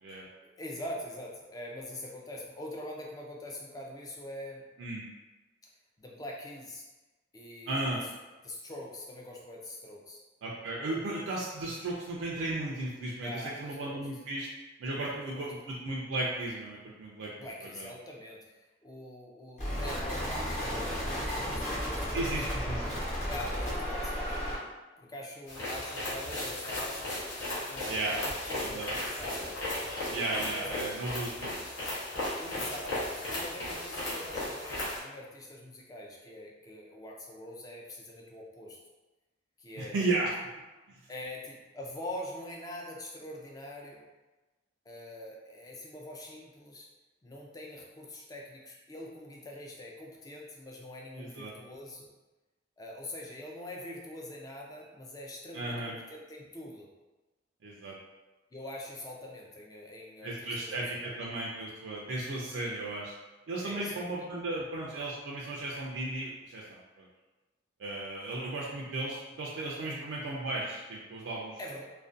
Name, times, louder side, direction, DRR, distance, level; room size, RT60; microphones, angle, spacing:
voice 1, 0.4-4.7 6.0-6.8 7.3-8.1 8.4-10.2 13.2-14.1 15.0-15.5 17.4-22.3 23.3-24.4 25.0-27.1 27.5-30.8 32.4-38.8 39.6-40.0 41.1-44.0 44.9-46.9 47.2-52.1 52.8-56.9 58.5-61.2 63.6-64.1 69.8-70.1 71.6-71.8, left 1 dB, 20° left, -1 dB, 0.3 m, -44 dB
voice 2, 7.7-8.0 10.4-14.5 14.8-17.3 17.7-17.9 22.1-22.8 27.9-28.1 28.6-28.9 30.1-31.5 39.8-40.3 40.9-41.0 51.1-51.5 55.5-55.9 57.6-58.0 60.2-63.1 63.5-67.1 67.8-71.6, right 2 dB, 75° right, -4 dB, 0.3 m, -35 dB
sound 1, 19.6-24.6, equal, 35° left, 0.9 m, -33 dB
sound 2, 25.5-35.0, left 1 dB, 80° left, 0.8 m, -36 dB
2.4 x 2.2 x 2.4 m, 1.1 s
head